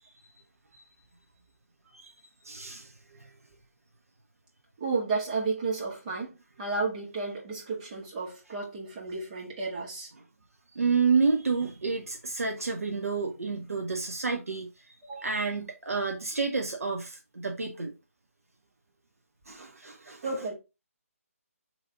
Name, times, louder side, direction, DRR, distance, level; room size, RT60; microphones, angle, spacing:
voice 1, 2.4-2.9 3.2-3.3 10.8-14.7 15.2-17.9 19.5-20.3, right 4 dB, 65° right, 0.8 m, -29 dB
voice 2, 4.8-10.1 15.0-15.3 20.2-20.5, right 4 dB, 30° right, 1.8 m, -32 dB
4.0 x 3.2 x 3.9 m
figure-of-eight pair, 150°, 8 cm